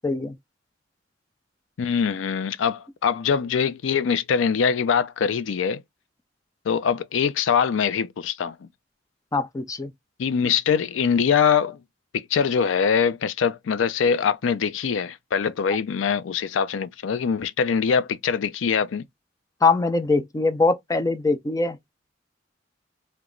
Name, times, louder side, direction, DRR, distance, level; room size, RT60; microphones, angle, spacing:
voice 1, 0.0-0.3 9.3-9.9 19.6-21.8, left 3 dB, 20° left, 0.4 m, -22 dB
voice 2, 1.8-5.8 6.7-8.7 10.2-11.8 12.1-19.0, left 6 dB, 90° left, 0.4 m, -23 dB
2.9 x 2.2 x 3.7 m
head